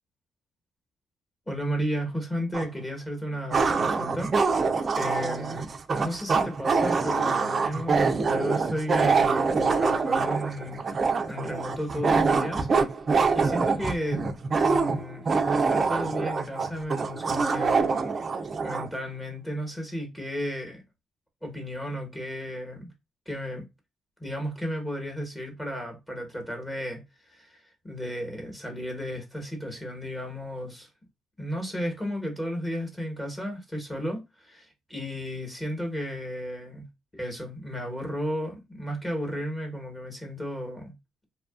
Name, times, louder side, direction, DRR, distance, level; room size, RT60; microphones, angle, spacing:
voice 1, 1.5-4.3 4.9-5.7 6.0-12.7 13.3-15.3 15.5-18.0 18.6-20.8 21.4-22.9 23.3-23.7 24.2-30.9 31.4-36.9 37.2-40.9, equal, 15° left, 1.1 m, -34 dB
sound 1, 2.5-2.6 3.5-18.9, right 4 dB, 40° right, 0.4 m, -25 dB
2.7 x 2.3 x 2.3 m
cardioid pair, 90°, 0 cm